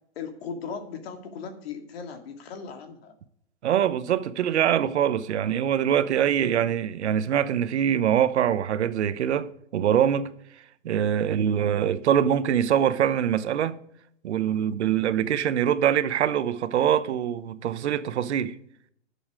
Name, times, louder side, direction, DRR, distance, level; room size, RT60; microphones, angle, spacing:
voice 1, 0.2-3.1, left 6 dB, 55° left, 2.4 m, -37 dB
voice 2, 3.6-10.3 10.8-13.8 14.2-18.6, right 9 dB, 65° right, 1.0 m, -24 dB
11.0 x 7.2 x 4.9 m
hypercardioid pair, 140°, 37 cm